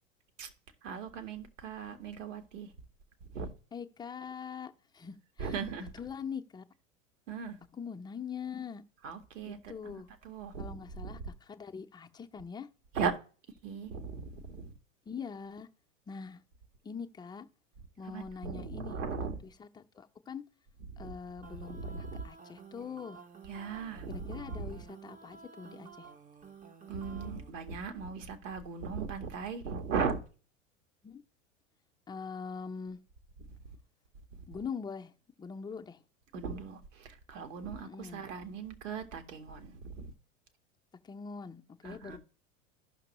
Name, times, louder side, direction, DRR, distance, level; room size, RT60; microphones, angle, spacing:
voice 1, 0.8-2.7 3.3-3.5 5.4-5.9 7.3-7.6 9.0-10.0 10.2-11.1 12.9-13.1 13.6-14.7 18.0-19.4 21.0-21.1 21.6-22.2 23.5-24.7 26.9-30.2 33.6-33.8 34.4-34.5 36.3-40.1 41.8-42.2, right 5 dB, 70° right, 1.5 m, -38 dB
voice 2, 3.7-6.6 7.7-8.8 9.4-10.1 10.6-12.7 15.1-15.7 16.1-16.4 16.8-17.5 18.0-19.0 19.4-20.4 21.0-23.2 24.1-26.1 31.0-31.2 32.1-33.0 34.5-35.1 35.4-36.0 37.8-38.2 41.0-42.2, left 6 dB, 10° left, 0.6 m, -43 dB
sound 1, 21.4-27.5, right 5 dB, 20° right, 0.7 m, -52 dB
14.5 x 5.9 x 3.0 m
hypercardioid pair, 90°, 39 cm